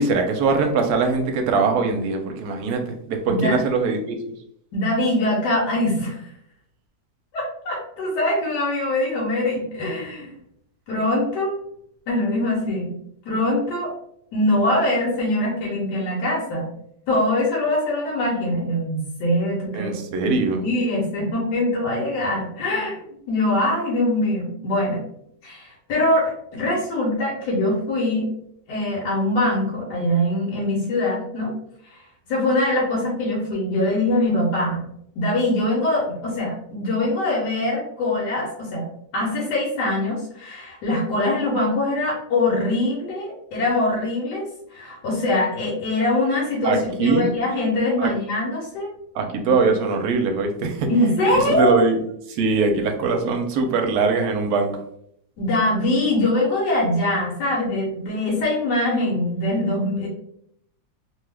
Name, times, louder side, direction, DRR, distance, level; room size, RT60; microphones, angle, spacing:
voice 1, 0.0-4.2 19.7-20.6 46.6-47.3 48.0-48.1 49.1-50.9 51.3-52.0 52.3-54.8, right 4 dB, 75° right, 4 dB, 1.0 m, -22 dB
voice 2, 3.3-3.6 4.7-6.3 7.3-10.4 10.9-11.6 12.1-12.9 13.2-13.9 14.3-16.7 17.1-19.9 20.2-25.0 25.4-28.3 28.7-31.5 32.3-34.8 35.2-38.8 39.1-48.9 49.4-49.5 50.9-51.8 55.4-60.1, left 1 dB, 80° left, -5 dB, 1.4 m, -23 dB
3.0 x 2.3 x 3.3 m, 0.72 s
omnidirectional pair, 1.8 m